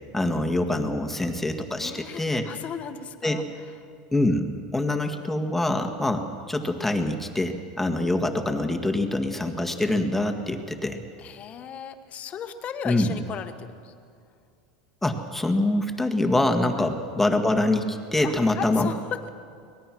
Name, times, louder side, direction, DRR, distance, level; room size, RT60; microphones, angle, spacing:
voice 1, 0.1-2.4 3.2-3.4 4.1-11.0 12.9-13.2 15.0-18.9, left 1 dB, 5° left, 5 dB, 1.8 m, -25 dB
voice 2, 1.8-3.4 11.2-13.9 16.7-16.9 18.2-19.3, left 8 dB, 35° left, 8 dB, 1.5 m, -36 dB
24.5 x 19.0 x 6.2 m, 2.3 s
supercardioid pair, 115°, 4 cm